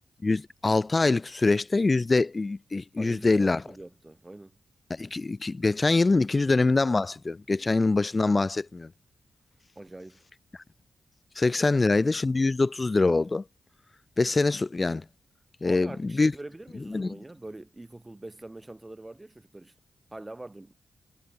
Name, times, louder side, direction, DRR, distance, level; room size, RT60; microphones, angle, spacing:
voice 1, 0.2-3.6 4.9-8.9 11.4-13.4 14.2-15.0 15.6-16.3 16.9-17.2, left 3 dB, 30° left, 0.4 m, -24 dB
voice 2, 3.0-4.6 9.8-10.2 11.6-11.8 15.6-19.7 20.1-20.7, right 2 dB, 20° right, 7.5 m, -44 dB
cardioid pair, 85°, 0 cm